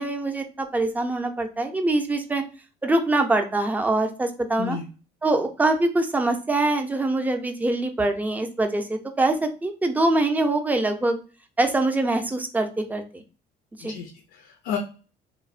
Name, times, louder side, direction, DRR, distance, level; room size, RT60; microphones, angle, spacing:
voice 1, 0.0-2.4 2.8-4.8 5.2-11.2 11.6-13.2 13.8-14.0, right 2 dB, 10° right, 5 dB, 0.4 m, -24 dB
voice 2, 13.8-14.8, left 8 dB, 90° left, 4 dB, 0.5 m, -32 dB
3.0 x 2.0 x 2.4 m, 0.35 s
cardioid pair, 110°, 17 cm